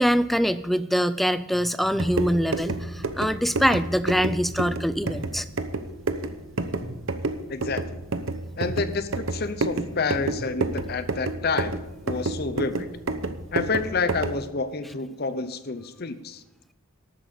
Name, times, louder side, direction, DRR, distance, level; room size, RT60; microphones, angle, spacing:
voice 1, 0.0-5.5, equal, ahead, 13 dB, 0.4 m, -24 dB
sound 1, 1.9-14.5, right 2 dB, 65° right, 0.9 m, -30 dB
voice 2, 7.5-8.0 8.6-12.9 13.5-16.4, left 4 dB, 50° left, 12 dB, 0.8 m, -29 dB
12.5 x 8.8 x 6.9 m, 0.97 s
head